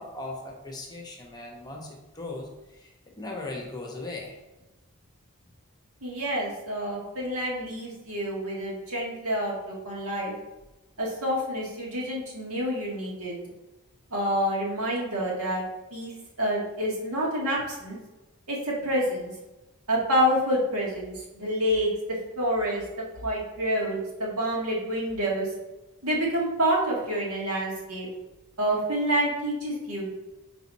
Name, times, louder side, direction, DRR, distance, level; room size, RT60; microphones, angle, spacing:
voice 1, 0.0-4.3, left 2 dB, 20° left, 0 dB, 0.9 m, -38 dB
voice 2, 6.0-10.3 11.0-13.4 14.1-15.7 15.9-18.0 18.5-19.3 19.9-21.9 22.4-22.8 23.2-25.5 26.0-28.1 28.6-30.2, equal, 80° right, -4 dB, 1.9 m, -28 dB
5.6 x 4.6 x 4.1 m, 1.1 s
head